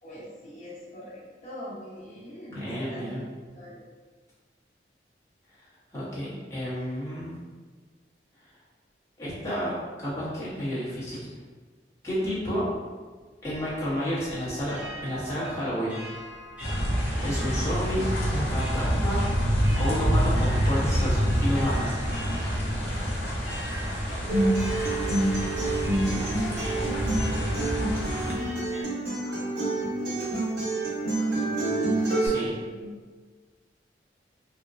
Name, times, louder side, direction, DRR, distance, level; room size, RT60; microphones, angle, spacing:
voice 1, 0.0-3.2 3.5-3.8 25.9-31.6 32.1-32.9, equal, 40° left, -8 dB, 1.0 m, -43 dB
voice 2, 2.5-3.2 5.9-7.3 9.2-11.2 12.0-12.6 13.4-16.0 17.2-18.0 18.3-19.2 19.8-21.9 32.2-32.5, equal, 15° left, -11 dB, 1.0 m, -30 dB
sound 1, 13.4-28.8, equal, 10° right, 0.8 m, -44 dB
sound 2, 16.6-28.3, equal, 65° left, 0.9 m, -27 dB
Acoustic guitar, 24.3-32.3, right 2 dB, 80° right, 1.1 m, -27 dB
3.5 x 2.1 x 2.6 m, 1.4 s
head